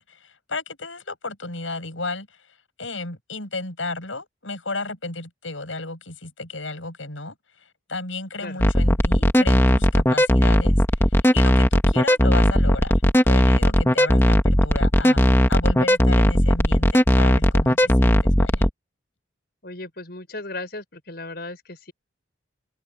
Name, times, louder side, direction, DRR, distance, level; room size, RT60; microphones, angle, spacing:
voice 1, 0.0-2.4 2.8-10.8 11.0-18.7, left 3 dB, 80° left, 7.9 m, -33 dB
sound 1, 8.6-18.7, equal, 10° left, 1.5 m, -17 dB
voice 2, 19.6-21.9, left 2 dB, 55° left, 6.7 m, -36 dB
open air
head